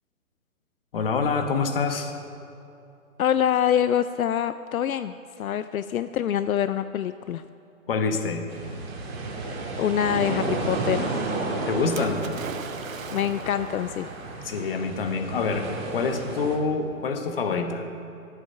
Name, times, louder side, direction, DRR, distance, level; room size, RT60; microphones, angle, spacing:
voice 1, 0.9-2.1 7.9-8.5 11.7-12.2 14.4-17.9, left 4 dB, 40° left, 6 dB, 1.2 m, -26 dB
voice 2, 3.2-7.4 9.8-11.1 13.1-14.1, left 10 dB, 75° left, 13 dB, 0.6 m, -25 dB
sound 1, 8.5-16.6, right 3 dB, 45° right, 2.5 m, -32 dB
Splash splatter, 12.0-13.8 14.7-14.8, right 7 dB, 65° right, 0.9 m, -40 dB
13.5 x 8.8 x 6.7 m, 2.7 s
hypercardioid pair, 165°, 42 cm